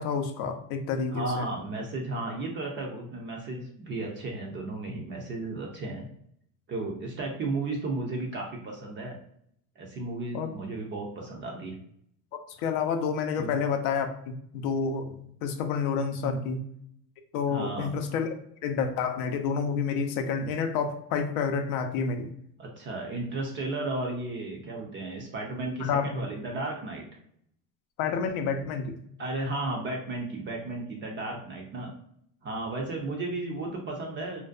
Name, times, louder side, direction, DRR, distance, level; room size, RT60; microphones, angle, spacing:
voice 1, 0.0-1.5 10.3-10.5 12.3-16.6 17.3-18.4 18.6-22.3 25.8-26.2 28.0-29.0, left 6 dB, 60° left, 6 dB, 0.5 m, -29 dB
voice 2, 1.1-6.0 6.7-9.2 9.8-11.7 13.4-13.5 16.2-16.4 17.5-18.2 22.6-27.0 29.2-31.9 32.4-34.4, right 2 dB, 25° right, 0 dB, 0.4 m, -34 dB
2.6 x 2.1 x 2.4 m, 0.69 s
supercardioid pair, 105°, 50 cm